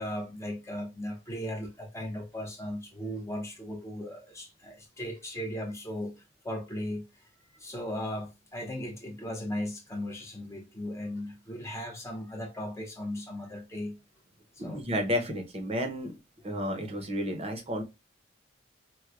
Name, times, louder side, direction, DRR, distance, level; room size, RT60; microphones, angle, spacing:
voice 1, 0.0-6.1 6.4-7.0 7.5-14.0 14.6-14.8, left 1 dB, 15° left, 0.6 m, -37 dB
voice 2, 14.6-16.1 16.4-17.8, equal, 30° right, 0.6 m, -31 dB
4.5 x 2.1 x 2.3 m
head